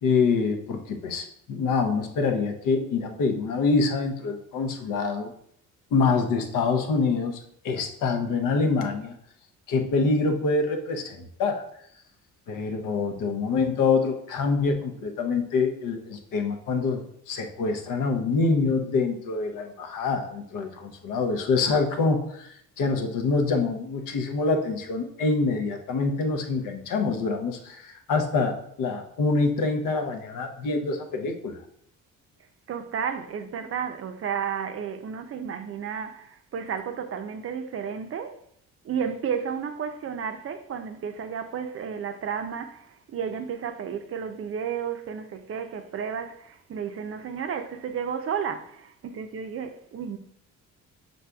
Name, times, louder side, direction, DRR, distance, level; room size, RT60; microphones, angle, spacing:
voice 1, 0.0-5.3 5.9-7.4 7.6-9.2 9.7-11.6 12.5-31.6, left 4 dB, 75° left, 0.7 m, -25 dB
voice 2, 32.7-38.4 38.8-50.2, right 7 dB, 45° right, 0.5 m, -32 dB
6.0 x 3.9 x 2.3 m
cardioid pair, 80°, 32 cm